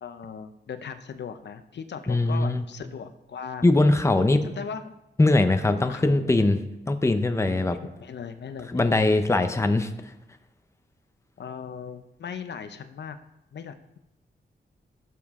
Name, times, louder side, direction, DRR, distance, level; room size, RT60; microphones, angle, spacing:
voice 1, 0.0-3.6 4.3-4.9 5.7-6.5 7.6-9.0 9.6-9.7 11.4-13.2 13.5-14.0, left 6 dB, 70° left, 10 dB, 0.7 m, -38 dB
voice 2, 2.1-2.6 3.6-4.4 5.2-7.8 8.7-9.9, left 2 dB, 15° left, 8 dB, 0.7 m, -21 dB
16.5 x 7.4 x 3.7 m, 0.91 s
wide cardioid pair, 130°, 19 cm